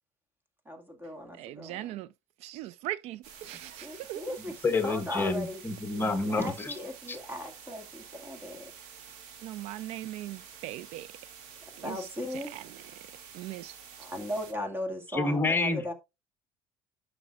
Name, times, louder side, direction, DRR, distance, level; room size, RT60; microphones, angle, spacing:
voice 1, 0.7-2.0 3.8-5.6 6.2-8.7 11.8-12.5 14.0-15.9, left 1 dB, 15° right, 2.1 m, -37 dB
voice 2, 1.4-2.1 2.4-4.2 9.4-11.1 11.8-12.6 13.3-13.7, right 15 dB, 65° right, 0.4 m, -39 dB
sound 1, 3.2-14.5, right 7 dB, 85° right, 2.2 m, -49 dB
voice 3, 4.6-6.7 7.1-7.2 15.1-15.8, left 3 dB, 20° left, 1.3 m, -28 dB
11.0 x 6.1 x 2.4 m
cardioid pair, 130°, 12 cm